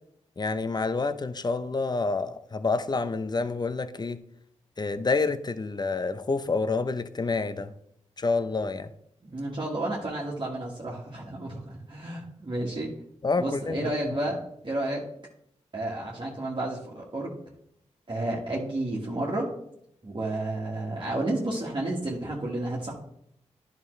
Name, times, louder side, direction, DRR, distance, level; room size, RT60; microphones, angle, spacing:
voice 1, 0.4-4.2 4.8-7.7 8.2-8.9 13.2-13.9, left 3 dB, 35° left, 12 dB, 0.6 m, -28 dB
voice 2, 9.2-12.9 13.4-14.4 14.6-15.0 15.7-17.3 18.1-19.5 20.0-22.9, right 1 dB, 40° right, -4 dB, 1.7 m, -31 dB
10.5 x 5.2 x 3.2 m, 0.72 s
cardioid pair, 50°, 12 cm